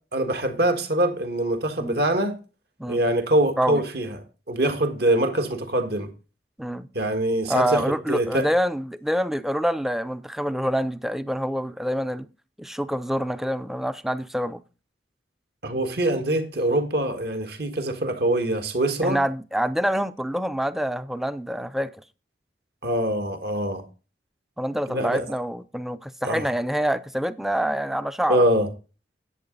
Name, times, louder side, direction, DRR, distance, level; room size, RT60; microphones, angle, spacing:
voice 1, 0.1-2.4 2.9-4.2 4.5-6.1 6.9-8.5 15.6-19.2 22.8-23.8 24.9-25.3 26.2-26.5 28.3-28.7, right 1 dB, 60° right, 1.8 m, -24 dB
voice 2, 7.5-12.3 12.6-14.6 19.0-21.9 24.6-28.4, equal, ahead, 0.5 m, -26 dB
11.0 x 8.6 x 3.9 m
head